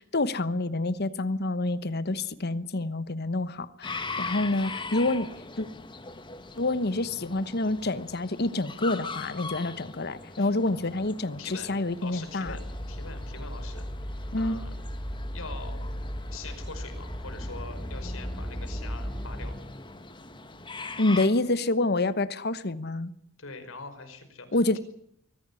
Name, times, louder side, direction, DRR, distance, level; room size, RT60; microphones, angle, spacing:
voice 1, 0.0-5.3 5.6-5.7 6.6-12.5 14.3-14.6 21.0-23.1 24.5-24.8, left 2 dB, 50° left, 1.1 m, -27 dB
sound 1, 3.8-21.3, left 3 dB, 25° left, 1.7 m, -41 dB
voice 2, 11.4-11.7 12.0-12.6 12.9-13.8 14.4-14.7 15.3-15.8 16.3-19.6 23.4-24.5, left 4 dB, 90° left, 5.3 m, -43 dB
sound 2, 12.4-19.5, equal, 5° left, 3.1 m, -36 dB
24.0 x 15.5 x 9.9 m
head